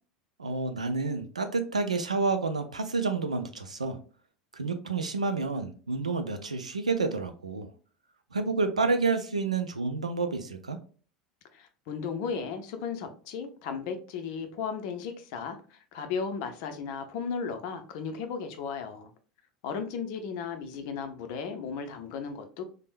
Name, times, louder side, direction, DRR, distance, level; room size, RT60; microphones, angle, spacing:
voice 1, 0.4-4.0 4.5-7.7 8.3-10.8, right 4 dB, 85° right, 8 dB, 0.4 m, -29 dB
voice 2, 11.5-19.1 19.6-22.6, left 6 dB, 55° left, 7 dB, 0.5 m, -35 dB
3.4 x 2.1 x 2.5 m, 0.39 s
figure-of-eight pair, 75°, 4 cm